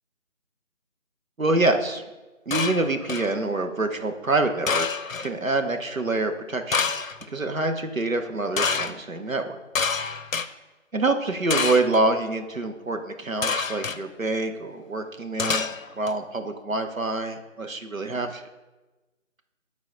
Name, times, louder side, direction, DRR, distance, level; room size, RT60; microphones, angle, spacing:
voice 1, 1.4-2.0 2.5-4.9 5.2-6.8 7.3-9.6 10.9-15.7 16.0-18.3, right 2 dB, 85° right, 6 dB, 1.0 m, -26 dB
sound 1, 2.5-3.3 4.7-5.3 6.7-7.2 8.6-8.9 9.7-10.5 11.5-12.0 13.4-14.0 15.4-16.1, left 5 dB, 80° left, 0.6 m, -27 dB
9.9 x 4.1 x 4.9 m, 1.1 s
figure-of-eight pair, 160°, 39 cm